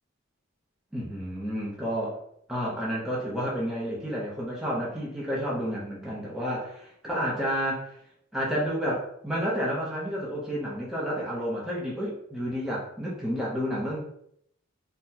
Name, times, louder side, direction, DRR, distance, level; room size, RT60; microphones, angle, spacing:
voice 1, 0.9-2.2 2.5-7.8 8.3-14.0, equal, ahead, -7 dB, 0.6 m, -30 dB
3.9 x 2.1 x 2.7 m, 0.71 s
head